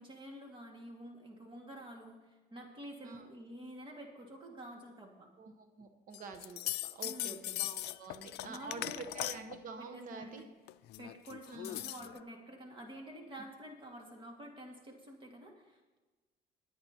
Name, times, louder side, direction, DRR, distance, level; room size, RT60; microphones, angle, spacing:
voice 1, 0.0-5.3 7.0-7.4 8.4-9.2 9.8-10.5 11.0-16.0, right 1 dB, 30° right, 1 dB, 2.0 m, -49 dB
voice 2, 5.4-10.4 11.5-11.9, right 4 dB, 55° right, 6 dB, 1.0 m, -47 dB
sound 1, 6.1-9.6 10.7-12.2, left 17 dB, 75° left, 0.4 m, -40 dB
21.0 x 8.7 x 2.9 m, 1.2 s
cardioid pair, 110°, 17 cm